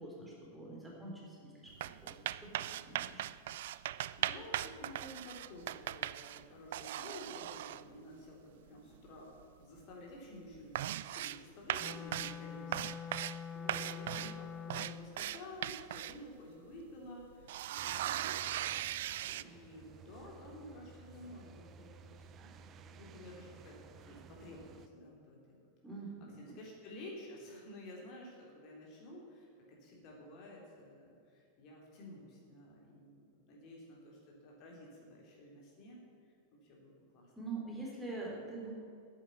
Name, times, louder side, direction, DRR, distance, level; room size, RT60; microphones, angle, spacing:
voice 1, 0.0-3.2 25.8-26.6 37.4-38.7, right 3 dB, 5° right, -4 dB, 3.7 m, -45 dB
sound 1, 1.7-6.4 6.7-7.8 8.9-9.1 9.4-9.8 10.1-10.2 10.5-11.4 11.7-12.4 12.7-13.4 13.7-16.2 16.7-16.8 17.2-19.4, right 13 dB, 55° right, 0.3 m, -39 dB
voice 2, 4.2-22.5 22.8-25.6 26.4-36.0 36.5-37.3, left 1 dB, 40° left, -2 dB, 3.5 m, -52 dB
Wind instrument woodwind instrument, 11.8-15.2, left 7 dB, 20° left, 0.5 m, -45 dB
sound 2, 17.8-24.9, right 5 dB, 30° right, 0.7 m, -56 dB
10.5 x 8.7 x 9.3 m, 2.4 s
figure-of-eight pair, 90°, 0 cm